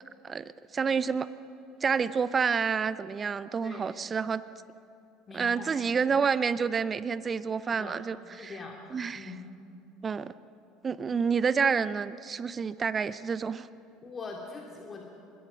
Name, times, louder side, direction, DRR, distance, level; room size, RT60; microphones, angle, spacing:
voice 1, 0.2-1.3 1.8-4.4 5.3-8.6 8.9-9.3 10.0-10.3 10.8-13.7, right 6 dB, 30° right, 16 dB, 0.6 m, -29 dB
voice 2, 5.3-5.7 7.7-8.0 8.4-8.7 9.1-9.4 14.0-15.0, left 4 dB, 30° left, 1 dB, 2.6 m, -42 dB
25.0 x 21.5 x 6.2 m, 2.7 s
figure-of-eight pair, 65°, 0 cm